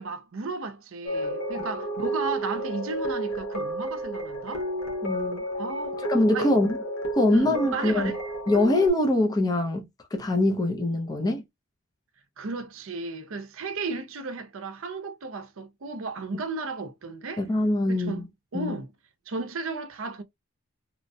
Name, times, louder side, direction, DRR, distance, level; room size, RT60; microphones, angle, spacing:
voice 1, 0.0-4.7 5.6-6.0 6.3-6.5 7.3-8.2 12.4-17.4 17.9-18.2 18.5-18.9 19.3-20.2, right 3 dB, 60° right, 0.6 m, -34 dB
sound 1, 1.1-8.9, right 1 dB, 70° left, 1.0 m, -31 dB
voice 2, 5.0-5.4 6.1-6.8 7.1-8.1 8.5-9.9 10.1-11.4 17.4-18.2 18.5-18.7, left 1 dB, 15° left, 0.5 m, -23 dB
3.0 x 2.1 x 2.7 m
head